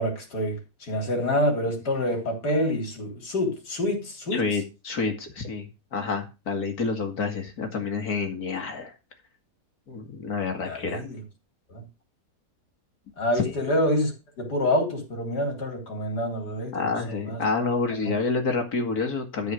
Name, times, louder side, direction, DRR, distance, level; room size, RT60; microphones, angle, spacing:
voice 1, 0.0-4.4 10.6-11.2 11.7-11.8 13.2-17.4 18.0-18.1, left 1 dB, 85° left, 2 dB, 4.0 m, -27 dB
voice 2, 4.3-8.9 9.9-11.0 13.4-13.6 16.7-19.5, left 4 dB, 65° left, 5 dB, 2.6 m, -28 dB
13.0 x 4.9 x 6.4 m, 0.28 s
omnidirectional pair, 1.7 m